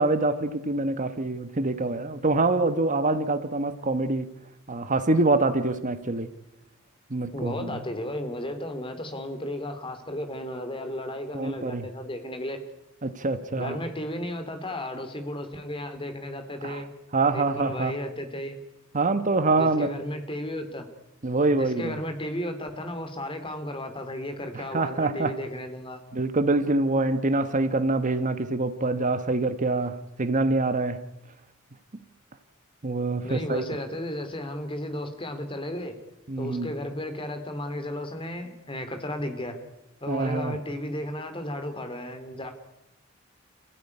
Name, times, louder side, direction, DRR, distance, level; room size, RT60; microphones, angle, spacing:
voice 1, 0.0-4.3 4.7-6.3 7.1-7.7 11.3-11.8 13.0-13.8 16.6-16.8 17.1-17.9 18.9-19.9 21.2-21.9 24.5-25.3 26.1-31.0 32.8-33.7 36.3-36.7 40.1-40.6, right 2 dB, 40° right, 11 dB, 1.2 m, -25 dB
voice 2, 7.3-12.6 13.6-16.9 17.3-18.6 19.6-20.9 21.5-26.0 33.2-36.0 36.4-39.6 40.0-42.5, left 1 dB, 25° left, 7 dB, 3.2 m, -34 dB
28.0 x 16.0 x 9.8 m, 0.90 s
head